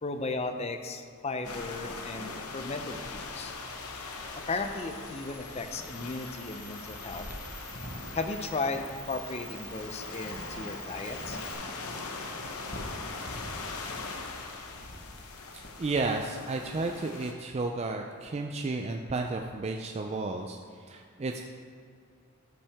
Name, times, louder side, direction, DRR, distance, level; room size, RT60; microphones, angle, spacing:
voice 1, 0.0-3.5 4.5-7.2 8.1-11.4 12.3-12.4, left 3 dB, 30° left, 7 dB, 0.5 m, -35 dB
sound 1, 1.4-17.3, left 3 dB, 85° left, 0.9 m, -41 dB
Camera, 4.5-11.5, right 3 dB, 5° right, 0.8 m, -49 dB
sound 2, 6.5-16.2, equal, 45° left, 1.1 m, -47 dB
voice 2, 15.8-21.4, right 3 dB, 30° right, 3 dB, 0.3 m, -32 dB
13.0 x 5.8 x 3.5 m, 2.2 s
head